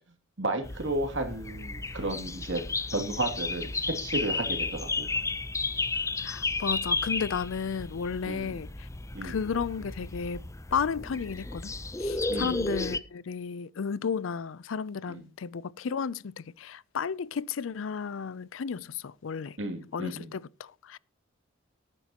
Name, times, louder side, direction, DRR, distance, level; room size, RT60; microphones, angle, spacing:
voice 1, 0.4-2.6 2.9-5.1 8.2-8.6 9.1-9.4 12.3-12.6 15.1-15.2 19.6-20.3, right 2 dB, 70° right, 2.6 m, -33 dB
sound 1, 0.6-13.0, left 3 dB, 15° left, 0.6 m, -33 dB
voice 2, 6.2-8.9 9.2-10.4 10.7-11.7 12.0-19.6 19.9-21.0, left 6 dB, 80° left, 0.5 m, -33 dB
18.0 x 9.9 x 2.9 m
head